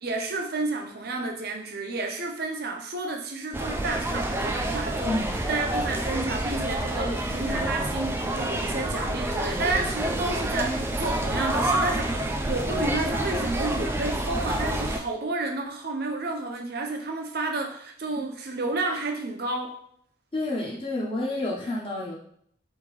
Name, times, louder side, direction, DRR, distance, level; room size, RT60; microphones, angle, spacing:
voice 1, 0.0-5.1 5.5-19.7, right 3 dB, 50° right, 3 dB, 0.7 m, -31 dB
sound 1, 3.5-15.0, right 1 dB, 10° right, 0.3 m, -28 dB
voice 2, 20.3-22.2, left 2 dB, 25° left, -4 dB, 0.9 m, -29 dB
3.6 x 2.8 x 4.7 m, 0.65 s
head